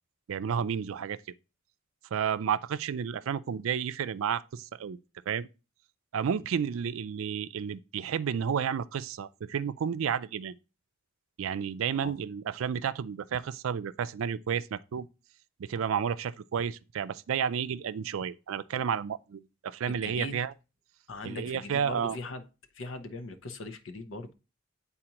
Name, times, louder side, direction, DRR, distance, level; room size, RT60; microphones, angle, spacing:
voice 1, 0.3-1.2 2.1-5.0 5.3-5.5 6.1-10.5 11.4-15.1 15.6-20.5 21.2-22.2, right 7 dB, 85° right, 0.4 m, -31 dB
voice 2, 19.9-20.4 21.1-22.5 22.7-24.3, left 2 dB, 70° left, 0.7 m, -40 dB
8.7 x 4.1 x 2.9 m
head